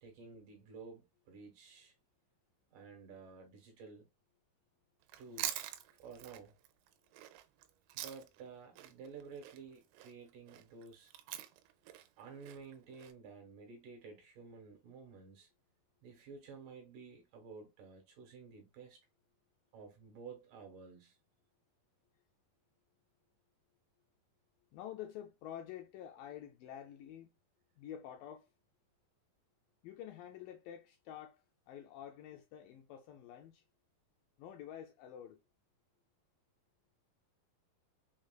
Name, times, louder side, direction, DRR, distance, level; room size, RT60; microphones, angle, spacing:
voice 1, 0.0-1.9 2.7-4.1 5.2-6.6 7.9-11.1 12.2-15.5 16.0-19.0 19.7-21.2, right 5 dB, 70° right, 2.3 m, -52 dB
Chewing mastication, 5.0-8.5 8.8-13.1, right 12 dB, 90° right, 2.5 m, -45 dB
voice 2, 24.7-27.3 27.8-28.5 29.8-33.6 34.4-35.4, left 10 dB, 80° left, 2.0 m, -49 dB
6.0 x 2.4 x 2.2 m
omnidirectional pair, 4.4 m